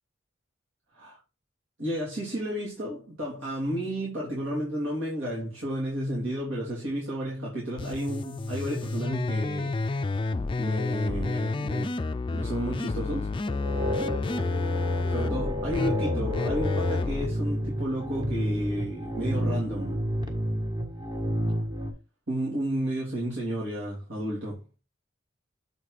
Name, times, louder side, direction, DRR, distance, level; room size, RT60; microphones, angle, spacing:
voice 1, 1.8-9.8 10.1-10.3 10.6-11.9 12.3-13.3 15.1-20.0 22.3-24.6, equal, 80° right, 3.1 m, -32 dB
sound 1, 7.8-17.3, left 3 dB, 25° left, 0.4 m, -30 dB
sound 2, 13.5-21.9, equal, 25° right, 1.5 m, -30 dB
7.6 x 4.1 x 4.9 m
head